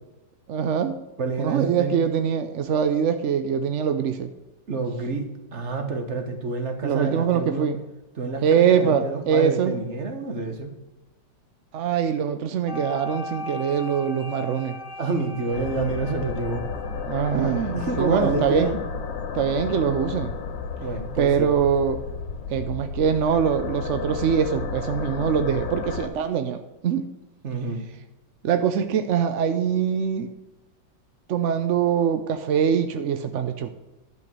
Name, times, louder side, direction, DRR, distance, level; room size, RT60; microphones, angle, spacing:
voice 1, 0.5-1.0 1.4-4.3 6.8-7.8 8.4-9.7 11.7-14.8 17.1-18.7 19.3-20.3 21.2-22.0 22.5-27.1 28.4-30.3 31.3-33.7, right 7 dB, 70° right, 9 dB, 0.7 m, -23 dB
voice 2, 1.2-2.0 4.7-7.7 8.2-10.7 15.0-16.7 17.7-18.8 20.8-21.5 27.4-27.8, right 3 dB, 40° right, 6 dB, 1.4 m, -28 dB
sound 1, 12.7-17.8, left 2 dB, 5° right, 1.2 m, -38 dB
sound 2, 15.5-26.1, left 5 dB, 75° left, 1.8 m, -32 dB
10.5 x 6.1 x 6.1 m, 1.0 s
omnidirectional pair, 2.0 m